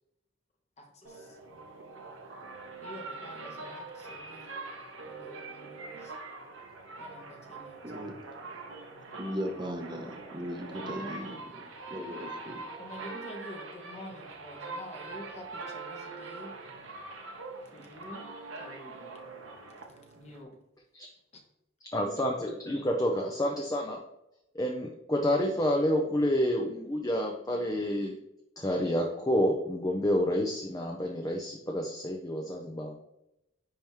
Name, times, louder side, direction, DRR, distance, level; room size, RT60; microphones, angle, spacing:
voice 1, 0.8-1.4 2.8-4.5 5.1-6.1 7.0-7.8 10.7-11.4 12.8-16.5 17.7-19.1 20.2-20.6, equal, 35° left, 2 dB, 1.1 m, -47 dB
sound 1, 1.0-20.4, right 3 dB, 75° right, 1.0 m, -43 dB
voice 2, 7.8-8.2 9.2-12.6, equal, 20° right, 4 dB, 0.7 m, -38 dB
voice 3, 21.9-24.0 24.5-28.1 28.6-32.9, equal, 20° left, 0 dB, 0.5 m, -29 dB
10.0 x 3.5 x 3.0 m, 0.88 s
head